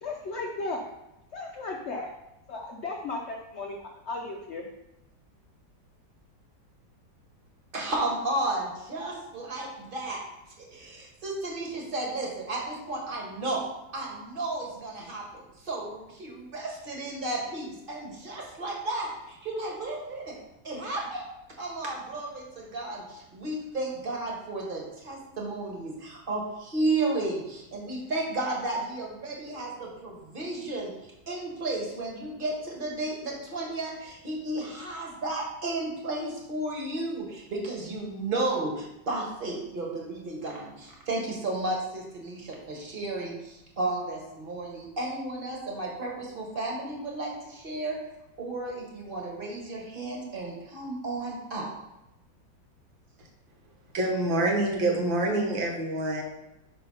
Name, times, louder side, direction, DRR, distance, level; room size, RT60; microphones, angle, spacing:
voice 1, 0.0-0.9 1.3-2.1 2.5-4.6, left 3 dB, 75° left, 1 dB, 0.6 m, -35 dB
voice 2, 7.7-10.2 10.6-13.6 13.9-20.4 20.6-21.2 21.6-30.9 31.3-47.9 48.4-51.7, right 2 dB, 30° right, -1 dB, 1.4 m, -33 dB
voice 3, 53.9-56.2, right 2 dB, 90° right, 1 dB, 1.9 m, -26 dB
5.5 x 3.9 x 5.5 m, 0.89 s
omnidirectional pair, 2.0 m